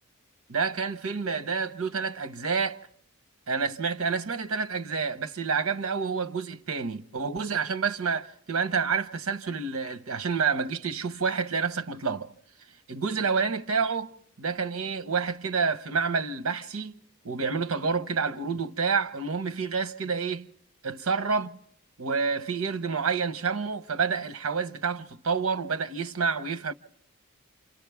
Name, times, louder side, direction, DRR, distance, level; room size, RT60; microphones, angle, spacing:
voice 1, 0.5-2.8 3.5-12.3 12.9-14.1 14.4-17.0 17.2-20.5 20.8-21.6 22.0-26.7, right 5 dB, 75° right, 0.8 m, -28 dB
28.5 x 26.5 x 3.5 m
head